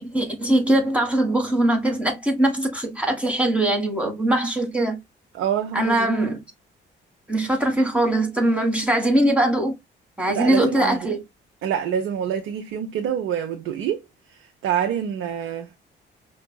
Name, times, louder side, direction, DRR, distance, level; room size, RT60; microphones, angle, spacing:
voice 1, 0.0-5.0 5.7-6.4 7.3-9.8 10.2-11.2, right 1 dB, 5° right, 1.6 m, -21 dB
voice 2, 5.3-6.2 10.3-11.1 11.6-14.0 14.3-15.8, right 9 dB, 85° right, 0.7 m, -26 dB
5.5 x 2.4 x 2.2 m
cardioid pair, 90°, 20 cm